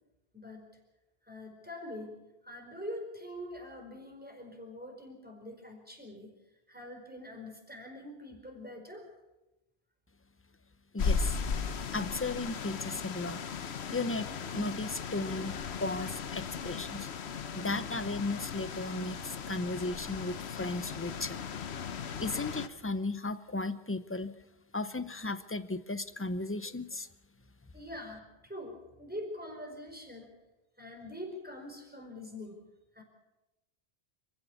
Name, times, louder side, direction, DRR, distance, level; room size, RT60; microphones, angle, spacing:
voice 1, 0.3-0.7 1.3-6.3 6.7-9.1 27.7-30.3 30.8-32.6 32.9-33.0, left 1 dB, 10° right, 2 dB, 4.6 m, -44 dB
voice 2, 10.9-11.4 11.9-13.4 13.9-17.1 17.5-21.4 22.2-24.3 24.7-27.1, left 2 dB, 15° left, 13 dB, 0.7 m, -35 dB
sound 1, 11.0-22.7, left 6 dB, 90° left, 1.2 m, -37 dB
26.0 x 15.5 x 7.1 m, 0.99 s
omnidirectional pair, 1.1 m